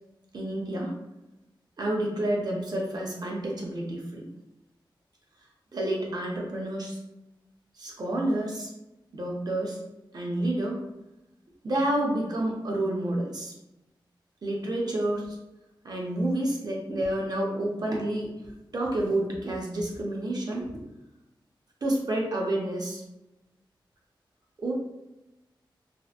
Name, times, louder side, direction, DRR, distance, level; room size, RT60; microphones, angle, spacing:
voice 1, 0.3-0.9 1.8-4.2 5.7-7.0 7.8-8.7 9.1-9.8 10.1-10.8 11.6-13.5 14.4-15.4 15.8-18.3 18.7-20.7 21.8-23.0 24.6-24.7, right 1 dB, 50° right, -2 dB, 0.5 m, -29 dB
2.8 x 2.0 x 2.3 m, 0.96 s
wide cardioid pair, 125°, 9 cm